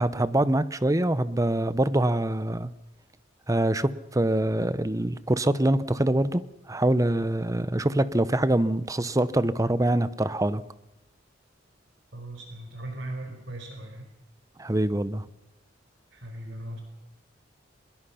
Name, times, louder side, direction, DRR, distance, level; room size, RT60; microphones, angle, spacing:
voice 1, 0.0-2.7 3.5-6.4 6.7-10.6 14.6-15.2, right 1 dB, 15° right, 0.7 m, -24 dB
voice 2, 12.1-14.1 16.1-16.8, right 1 dB, 70° right, 4.3 m, -38 dB
24.0 x 21.5 x 5.8 m
head